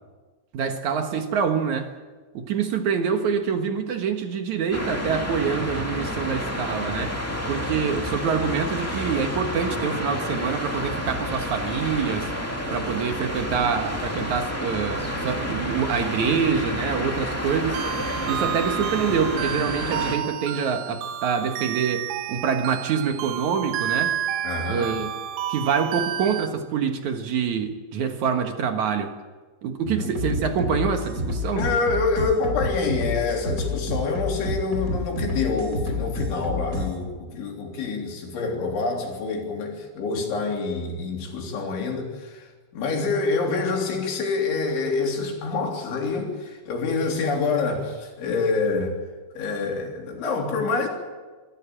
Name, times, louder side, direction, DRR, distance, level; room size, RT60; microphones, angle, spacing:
voice 1, 0.5-1.9 2.3-7.2 7.5-12.3 12.7-17.8 18.3-24.2 24.7-25.1 25.5-29.1 29.6-31.7, right 6 dB, 65° right, 5 dB, 2.0 m, -26 dB
sound 1, 4.7-20.2, equal, 10° left, 1.0 m, -30 dB
sound 2, 17.7-26.5, right 11 dB, 80° right, 3.2 m, -30 dB
voice 2, 24.4-24.9 29.8-30.1 31.6-49.0 49.4-50.9, left 4 dB, 85° left, 1 dB, 5.8 m, -26 dB
sound 3, 30.1-36.9, left 2 dB, 20° right, 4.0 m, -29 dB
25.0 x 14.5 x 8.7 m, 1.4 s
omnidirectional pair, 5.2 m